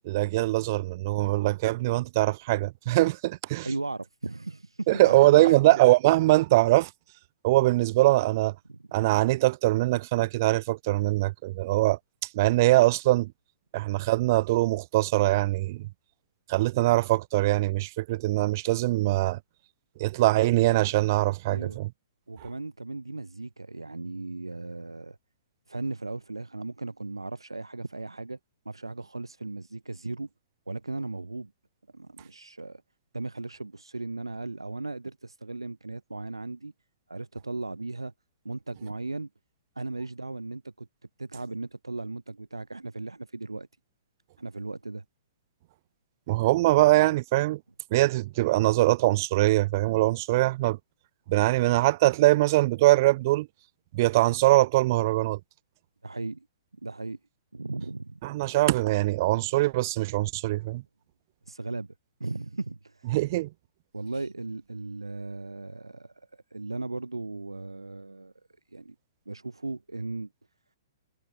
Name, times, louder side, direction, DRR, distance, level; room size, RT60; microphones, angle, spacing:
voice 1, 0.0-3.7 4.9-6.9 7.4-8.5 8.9-12.0 12.3-13.3 13.7-15.9 16.5-19.4 20.0-21.9 46.3-47.6 47.9-50.8 51.3-53.5 53.9-55.4 58.2-60.8 63.1-63.5, right 18 dB, 40° right, 0.5 m, -22 dB
voice 2, 3.6-5.8 8.7-8.9 21.5-21.8 22.3-25.2 25.7-28.4 28.6-30.3 30.7-31.5 31.9-32.8 33.1-36.7 37.1-38.1 38.4-39.3 39.7-40.9 41.2-43.7 44.4-45.0 56.0-56.5 56.8-57.2 57.5-58.2 61.5-61.9 62.2-63.1 63.9-68.3 68.7-68.9 69.3-70.3, right 3 dB, 85° right, 1.3 m, -36 dB
figure-of-eight pair, 120°, 2 cm